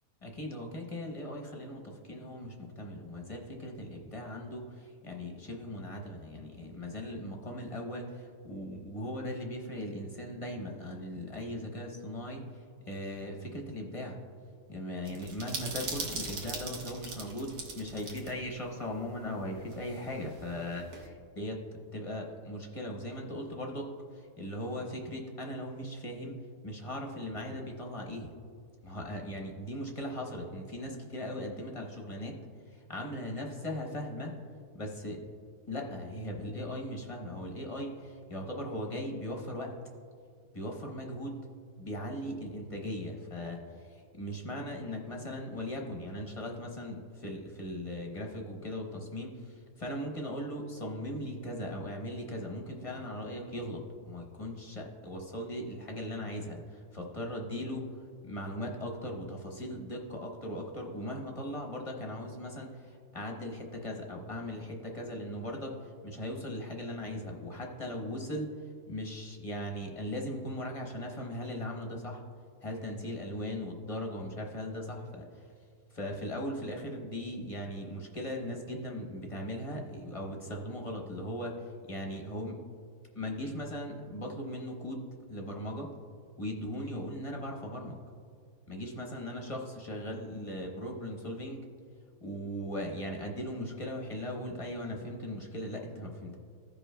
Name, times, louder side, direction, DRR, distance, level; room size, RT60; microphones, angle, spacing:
voice 1, 0.2-14.2 14.7-21.6 21.9-26.4 26.6-28.3 28.8-32.3 32.7-34.3 34.7-35.2 35.7-39.7 40.5-41.4 41.8-57.8 58.2-68.5 68.9-72.2 72.6-75.5 75.9-82.6 83.1-85.9 86.4-88.0 88.7-91.6 92.2-96.4, equal, 30° left, 1 dB, 0.7 m, -38 dB
sound 1, 15.1-18.3 18.6-18.7 19.7-21.1, right 3 dB, 70° right, 1.5 m, -40 dB
15.5 x 5.2 x 2.2 m, 2.2 s
omnidirectional pair, 1.6 m